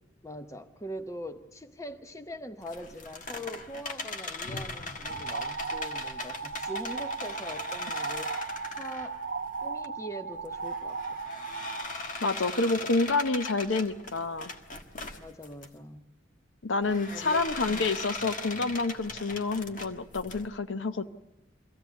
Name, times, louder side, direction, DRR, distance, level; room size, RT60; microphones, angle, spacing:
voice 1, 0.2-8.3 8.8-9.2 9.6-11.2 15.2-16.0 17.1-17.9, equal, 15° left, 9 dB, 0.9 m, -42 dB
sound 1, 2.6-9.9 10.3-15.7 16.8-20.5, left 3 dB, 40° left, 1.4 m, -39 dB
sound 2, 5.0-11.8, right 4 dB, 70° right, 0.8 m, -36 dB
voice 2, 12.2-14.5 16.6-21.1, left 3 dB, 80° left, 11 dB, 0.8 m, -28 dB
23.5 x 16.0 x 8.1 m, 0.96 s
head